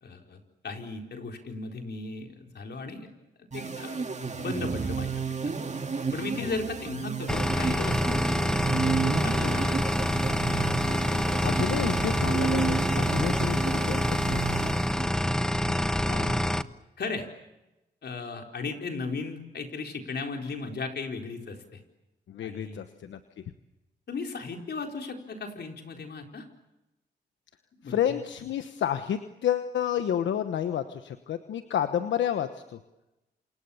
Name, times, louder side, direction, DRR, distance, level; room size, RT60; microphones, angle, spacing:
voice 1, 0.0-3.1 3.4-4.0 4.4-5.5 6.1-8.2 8.8-9.8 10.3-11.4 16.1-16.5 17.0-17.3 18.0-21.8 22.4-22.8 24.1-26.5 27.7-28.2, left 3 dB, 65° left, 3 dB, 4.4 m, -36 dB
sound 1, 3.5-15.3, right 5 dB, 40° right, 2.3 m, -32 dB
sound 2, 7.3-16.6, left 1 dB, 5° left, 1.1 m, -26 dB
voice 2, 11.4-14.4 22.3-23.2 27.8-32.8, left 9 dB, 85° left, 9 dB, 1.2 m, -30 dB
28.0 x 27.5 x 7.1 m, 0.98 s
cardioid pair, 60°, 19 cm